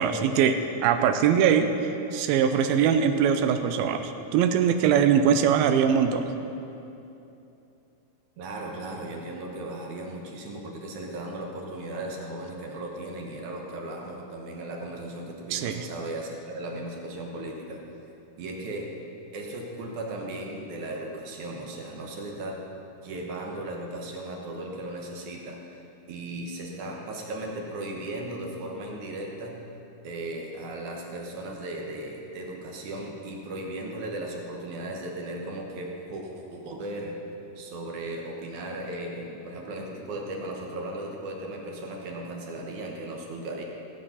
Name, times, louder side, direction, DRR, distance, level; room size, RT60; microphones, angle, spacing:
voice 1, 0.0-1.7 2.1-6.3 15.5-15.8, right 8 dB, 90° right, 8 dB, 2.5 m, -22 dB
voice 2, 8.4-17.8 18.4-18.9 19.3-22.6 23.0-25.8 26.1-29.6 30.0-37.2 37.6-43.6, right 1 dB, 65° right, 0 dB, 2.3 m, -36 dB
16.5 x 7.9 x 5.7 m, 2.8 s
omnidirectional pair, 4.2 m